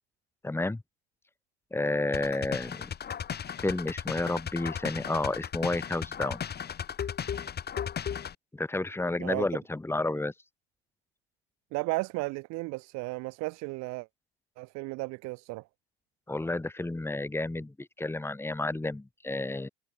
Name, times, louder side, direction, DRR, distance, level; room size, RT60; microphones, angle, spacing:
voice 1, 0.4-0.8 1.7-2.9 3.6-6.4 8.5-10.3 16.3-19.7, left 2 dB, 5° left, 3.9 m, -31 dB
sound 1, 2.1-8.4, left 8 dB, 30° left, 5.4 m, -36 dB
voice 2, 11.7-14.1 14.6-15.6, right 24 dB, 55° right, 6.3 m, -34 dB
hypercardioid pair, 85°, 32 cm